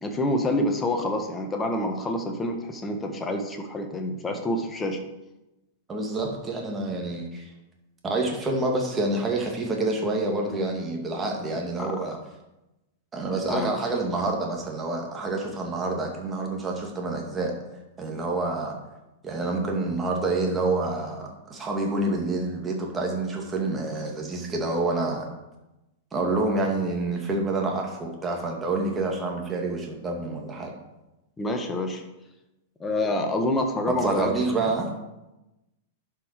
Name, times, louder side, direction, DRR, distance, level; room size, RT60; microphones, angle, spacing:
voice 1, 0.0-5.0 11.8-12.0 13.5-13.7 31.4-32.0 32.8-34.5, left 1 dB, 15° left, 4 dB, 1.6 m, -27 dB
voice 2, 5.9-7.5 8.0-12.2 13.1-17.6 18.0-18.8 19.2-25.3 26.1-30.7 33.9-34.9, right 2 dB, 20° right, 1 dB, 2.4 m, -27 dB
11.5 x 5.8 x 4.8 m, 0.97 s
figure-of-eight pair, 100°, 0 cm